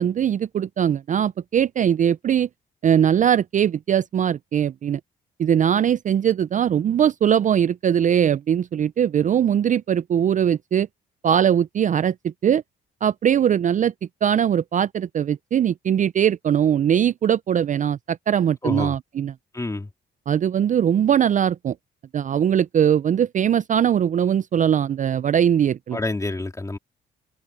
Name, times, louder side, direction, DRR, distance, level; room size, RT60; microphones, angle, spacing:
voice 1, 0.0-2.5 2.8-5.0 5.4-10.9 11.2-12.6 13.0-13.9 14.2-19.3 20.3-21.8 22.1-26.0, right 9 dB, 40° right, 0.4 m, -21 dB
voice 2, 19.5-19.9 25.9-26.8, left 2 dB, 15° left, 2.9 m, -27 dB
cardioid pair, 90°, 20 cm